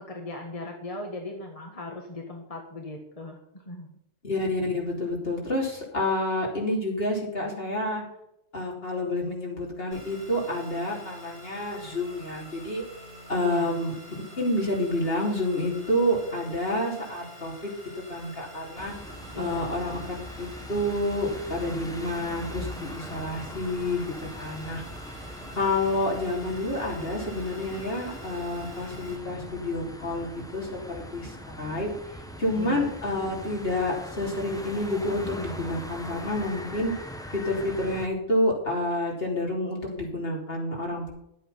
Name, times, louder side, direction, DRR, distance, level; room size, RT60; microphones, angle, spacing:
voice 1, 0.0-3.9 13.4-13.8 19.3-19.8 32.5-32.9, left 2 dB, 30° left, 1 dB, 1.6 m, -38 dB
voice 2, 4.2-8.0 8.5-12.8 13.3-13.9 14.4-17.7 18.1-18.9 19.4-20.0 20.4-24.0 24.4-24.8 25.5-31.9 32.4-36.9 37.3-41.1, left 1 dB, 55° left, -2 dB, 3.5 m, -29 dB
sound 1, 9.9-29.2, equal, 75° left, 5.1 m, -47 dB
sound 2, 18.8-38.1, equal, 5° left, 1.0 m, -41 dB
11.5 x 8.3 x 5.6 m, 0.79 s
omnidirectional pair, 1.2 m